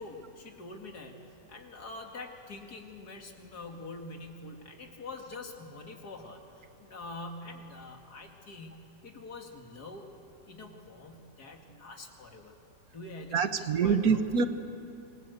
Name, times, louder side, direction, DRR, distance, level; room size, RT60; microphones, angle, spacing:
voice 1, 0.0-8.8 9.0-10.1 10.5-12.5 12.9-14.2, left 2 dB, 65° left, 3 dB, 2.7 m, -45 dB
voice 2, 13.3-14.5, right 6 dB, 60° right, 10 dB, 1.5 m, -25 dB
26.5 x 23.5 x 8.0 m, 2.8 s
omnidirectional pair, 1.8 m